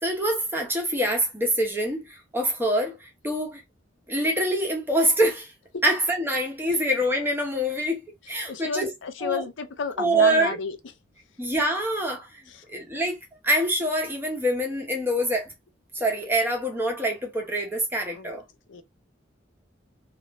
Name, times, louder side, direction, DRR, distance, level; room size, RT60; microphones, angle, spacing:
voice 1, 0.0-3.6 4.1-5.5 5.8-8.9 9.2-9.5 10.0-10.6 11.4-12.4 12.7-13.2 13.4-15.5 15.9-18.4, right 1 dB, 10° right, 0.8 m, -25 dB
voice 2, 8.5-10.8 12.5-12.6 18.1-18.3 18.7-18.8, left 5 dB, 80° left, 0.6 m, -32 dB
3.0 x 2.5 x 3.1 m
head